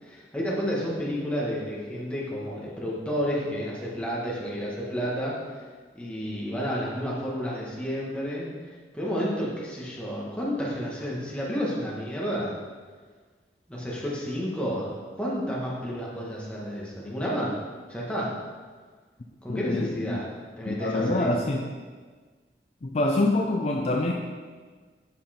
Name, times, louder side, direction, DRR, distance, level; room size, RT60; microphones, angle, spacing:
voice 1, 0.0-5.6 5.9-8.5 8.9-12.6 13.7-17.6 17.9-18.4 19.4-20.3 20.6-21.3, equal, 5° left, -6 dB, 1.5 m, -31 dB
voice 2, 19.5-20.3 20.6-21.7 22.8-24.1, left 2 dB, 40° left, 1 dB, 0.4 m, -26 dB
7.7 x 5.5 x 4.3 m, 1.5 s
head